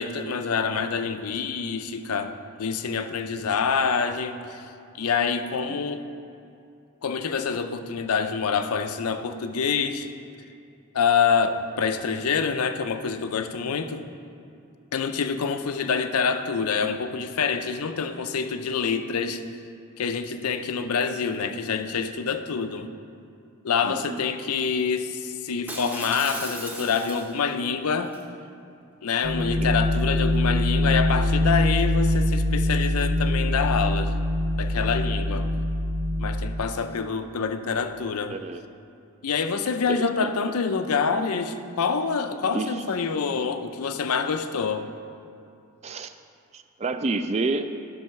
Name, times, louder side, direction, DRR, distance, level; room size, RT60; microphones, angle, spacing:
voice 1, 0.0-4.7 4.9-6.0 7.0-10.1 10.9-14.1 14.9-19.4 20.0-22.9 23.6-28.1 29.0-34.2 34.6-35.5 36.2-38.4 39.2-44.9, left 5 dB, 85° left, 9 dB, 0.5 m, -26 dB
voice 2, 23.8-24.2 29.6-29.7 35.3-35.4 38.3-38.6 39.9-40.3 42.5-42.8 45.8-46.1 46.5-47.7, right 3 dB, 30° right, 10 dB, 0.3 m, -29 dB
Shatter, 25.7-27.5 27.9-28.2, right 1 dB, 10° right, 0.8 m, -36 dB
sound 1, 29.2-36.4, left 1 dB, 80° right, 1.3 m, -23 dB
11.0 x 5.5 x 5.8 m, 2.5 s
head